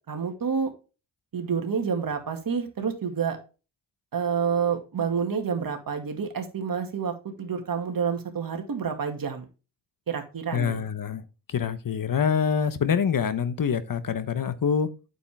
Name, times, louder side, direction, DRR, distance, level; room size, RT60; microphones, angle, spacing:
voice 1, 0.1-0.7 1.3-3.4 4.1-9.4 10.1-10.8, right 6 dB, 50° right, 2.2 m, -28 dB
voice 2, 10.5-11.2 11.5-14.9, left 7 dB, 50° left, 1.1 m, -25 dB
9.0 x 7.0 x 3.5 m
cardioid pair, 90°, 44 cm